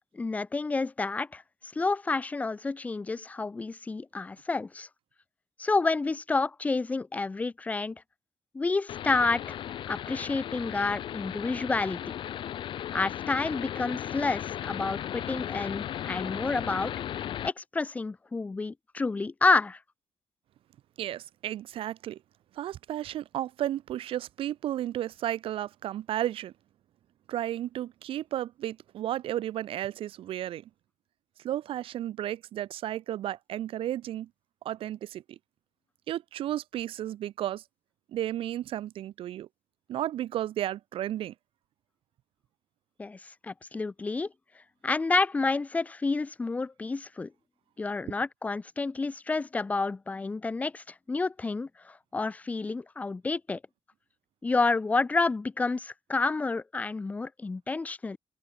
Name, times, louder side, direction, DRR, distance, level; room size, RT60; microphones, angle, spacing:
voice 1, 0.1-1.4 1.8-4.9 5.6-8.0 8.5-9.6 9.9-12.0 12.9-16.9 17.4-19.8 43.0-44.3 44.8-47.3 47.8-53.6 54.4-58.2, left 3 dB, 15° left, 0.5 m, -29 dB
sound 1, 8.9-17.5, left 10 dB, 60° left, 0.8 m, -36 dB
voice 2, 21.0-22.2 22.6-26.5 27.3-30.7 31.4-34.3 34.6-35.4 36.1-37.6 38.1-39.5 39.9-41.3, right 12 dB, 70° right, 0.5 m, -33 dB
open air
wide cardioid pair, 175°, 10 cm